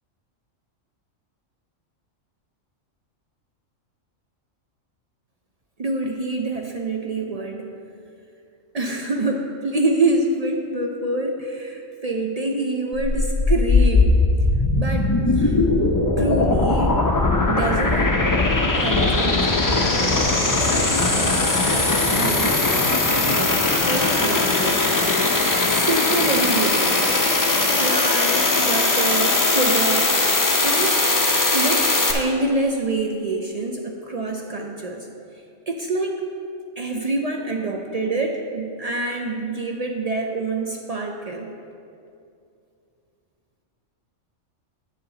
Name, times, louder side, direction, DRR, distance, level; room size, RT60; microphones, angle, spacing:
voice 1, 5.8-7.7 8.7-14.2 14.8-15.6 16.2-17.1 17.4-18.2 18.7-22.6 23.1-23.5 23.9-25.3 25.6-27.1 27.7-30.1 30.6-31.0 31.5-35.1 35.7-36.2 36.8-41.5, right 2 dB, 60° right, 1 dB, 0.4 m, -26 dB
sound 1, 12.9-32.1, left 2 dB, 30° left, 0.4 m, -19 dB
9.7 x 6.6 x 3.9 m, 2.5 s
omnidirectional pair, 1.3 m